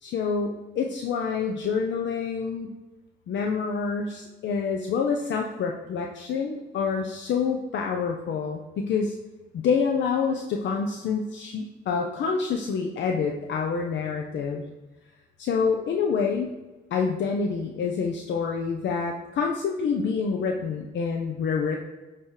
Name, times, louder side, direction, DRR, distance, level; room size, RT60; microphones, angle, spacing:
voice 1, 0.0-2.7 3.3-9.2 9.5-14.6 15.4-16.5 16.9-21.8, left 5 dB, 65° left, 2 dB, 0.6 m, -27 dB
8.3 x 3.0 x 4.6 m, 1.1 s
cardioid pair, 90°, 20 cm